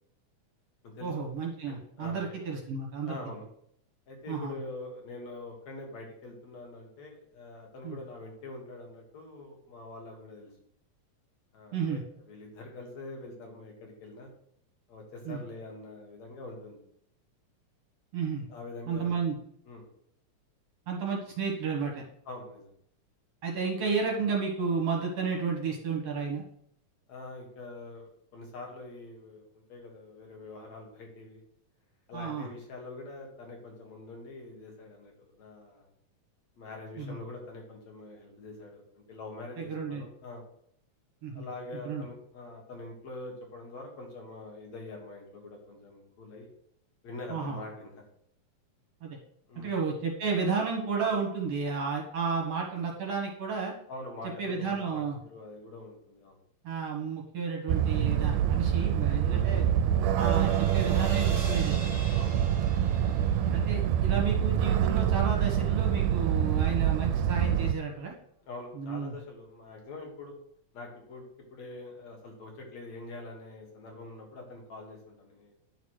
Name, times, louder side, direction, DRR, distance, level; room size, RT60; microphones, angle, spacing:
voice 1, 1.0-3.2 4.3-4.5 7.8-8.0 11.7-12.0 15.3-15.4 18.1-18.5 18.9-19.4 20.9-22.0 23.4-26.4 32.1-32.5 37.0-37.2 39.6-40.0 41.2-41.5 41.8-42.0 47.3-47.6 49.0-49.2 49.6-53.7 54.4-55.2 56.6-59.7 60.1-62.1 63.5-68.1 68.8-69.1, right 5 dB, 60° right, 0 dB, 2.3 m, -32 dB
voice 2, 1.7-2.3 3.0-3.4 4.1-10.5 11.5-12.0 12.3-14.3 14.9-16.8 18.5-19.1 19.7-19.9 22.3-22.7 27.1-31.4 32.1-35.9 36.6-40.4 41.3-46.5 47.0-47.9 49.5-49.8 53.9-56.4 59.2-59.7 62.1-62.6 68.4-70.3 70.7-71.3 71.5-75.5, left 2 dB, 60° left, 0 dB, 3.1 m, -44 dB
sound 1, 57.7-67.7, right 10 dB, 90° right, 2.1 m, -26 dB
sound 2, 59.1-64.9, right 3 dB, 25° right, 2.6 m, -42 dB
10.0 x 4.1 x 6.3 m, 0.68 s
omnidirectional pair, 3.6 m